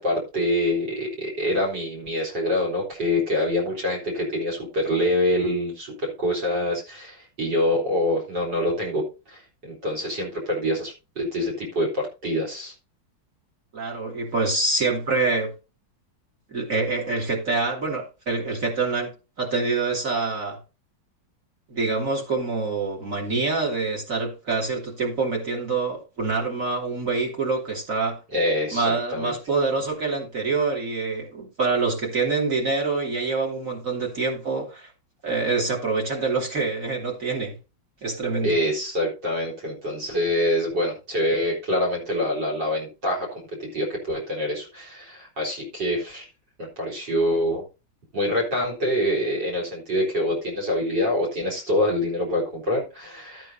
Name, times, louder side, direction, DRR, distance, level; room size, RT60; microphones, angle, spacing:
voice 1, 0.0-12.7 28.3-29.3 38.4-46.3 46.6-47.7 48.1-53.5, left 1 dB, 70° right, 4.6 m, -25 dB
voice 2, 13.7-15.5 16.5-20.6 21.7-28.2 28.7-34.9 35.2-37.6 38.0-38.6, right 3 dB, 45° right, 3.4 m, -26 dB
13.5 x 8.8 x 2.7 m
omnidirectional pair, 2.0 m